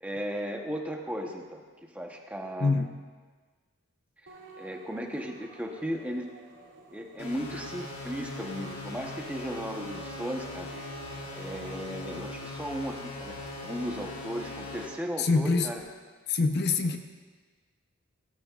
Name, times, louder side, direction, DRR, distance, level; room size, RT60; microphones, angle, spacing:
voice 1, 0.0-2.8 4.2-6.3 6.9-10.7 11.4-13.4 13.6-15.8, equal, 5° right, 1 dB, 0.9 m, -36 dB
sound 1, 4.3-15.9, right 2 dB, 65° right, 2.2 m, -53 dB
sound 2, 7.2-14.9, left 2 dB, 90° left, 3.0 m, -40 dB
voice 2, 15.2-15.7 16.3-17.0, left 3 dB, 50° left, 6 dB, 0.6 m, -25 dB
17.5 x 15.0 x 2.4 m, 1.4 s
head